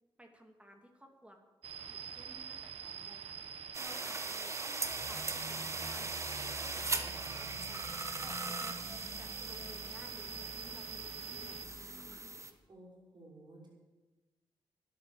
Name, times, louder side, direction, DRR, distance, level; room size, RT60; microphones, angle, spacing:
voice 1, 0.2-1.4 1.8-3.4 3.8-7.9 8.2-12.1, equal, 10° right, 3 dB, 2.7 m, -57 dB
sound 1, 1.6-11.7, right 7 dB, 80° right, 1.3 m, -45 dB
sound 2, 3.7-12.5, right 3 dB, 30° right, 1.4 m, -40 dB
sound 3, 4.8-12.5, left 1 dB, 45° left, 2.9 m, -51 dB
voice 2, 6.9-7.9 12.7-13.7, right 2 dB, 50° right, -3 dB, 6.0 m, -55 dB
12.5 x 11.0 x 7.1 m, 1.2 s
cardioid pair, 60°, 10 cm